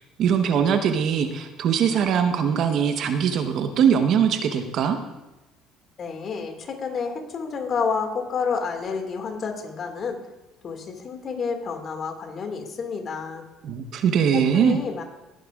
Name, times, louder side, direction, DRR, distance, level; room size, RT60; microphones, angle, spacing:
voice 1, 0.0-5.0 13.6-14.8, right 7 dB, 60° right, 7 dB, 1.0 m, -21 dB
voice 2, 6.0-10.2 10.6-13.4 14.3-15.0, left 5 dB, 45° left, 4 dB, 2.0 m, -29 dB
18.0 x 9.0 x 2.4 m, 1.0 s
supercardioid pair, 75°, 0 cm